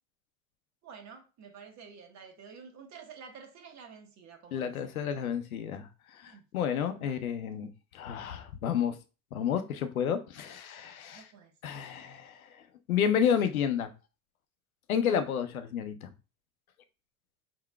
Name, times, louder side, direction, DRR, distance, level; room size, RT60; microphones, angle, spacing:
voice 1, 0.8-5.0 6.2-6.4 6.9-7.3 11.1-11.6, right 6 dB, 40° right, 1.3 m, -50 dB
voice 2, 4.5-5.9 6.2-7.7 7.9-9.0 9.3-11.3 11.6-12.4 12.9-13.9 14.9-16.1, left 8 dB, 90° left, 0.7 m, -30 dB
4.5 x 3.8 x 2.3 m
hypercardioid pair, 85°, 41 cm